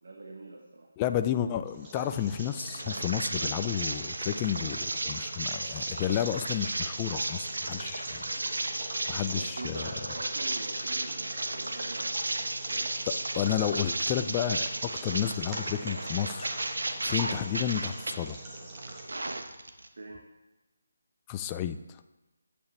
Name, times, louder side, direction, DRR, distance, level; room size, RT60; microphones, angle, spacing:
voice 1, 0.0-0.9 9.2-12.9 20.0-20.3, right 3 dB, 55° right, 0 dB, 1.1 m, -44 dB
voice 2, 1.0-8.3 9.1-9.9 13.1-16.6 17.0-18.4 21.3-21.8, left 10 dB, 15° left, 10 dB, 0.3 m, -31 dB
sound 1, 1.6-19.1, right 2 dB, 15° right, 1.2 m, -43 dB
sound 2, 2.4-18.1 18.6-19.9, right 2 dB, 85° right, 1.0 m, -34 dB
9.8 x 8.6 x 3.2 m, 1.1 s
figure-of-eight pair, 170°, 0 cm